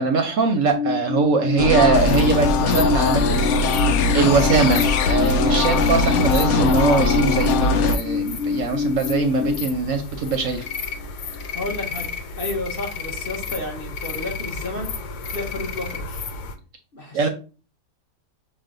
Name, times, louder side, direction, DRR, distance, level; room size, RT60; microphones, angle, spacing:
voice 1, 0.0-3.8 4.1-10.6 17.1-17.3, right 4 dB, 65° right, 5 dB, 0.9 m, -21 dB
Alarm, 0.6-9.5, left 6 dB, 20° right, 0.3 m, -27 dB
sound 1, 1.6-8.0, left 3 dB, 70° left, 1.0 m, -20 dB
sound 2, 1.9-16.5, left 5 dB, 85° left, 1.2 m, -33 dB
voice 2, 11.5-12.1 12.4-14.9 15.3-16.2 16.9-17.3, left 2 dB, 40° left, 0 dB, 1.0 m, -31 dB
6.0 x 2.2 x 3.7 m, 0.36 s
omnidirectional pair, 1.7 m